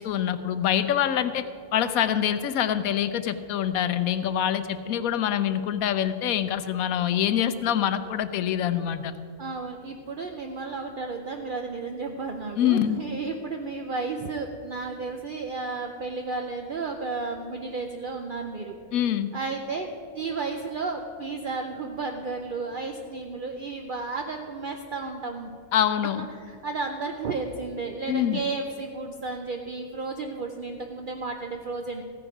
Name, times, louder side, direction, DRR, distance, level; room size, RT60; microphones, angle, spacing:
voice 1, 0.0-1.4 1.7-9.1 12.6-13.0 18.9-19.3 25.7-26.2 28.1-28.4, left 10 dB, 70° left, 12 dB, 1.0 m, -25 dB
voice 2, 9.4-18.8 19.3-25.5 26.4-32.0, right 3 dB, 60° right, 3 dB, 0.5 m, -33 dB
14.5 x 9.7 x 4.9 m, 2.4 s
omnidirectional pair, 1.7 m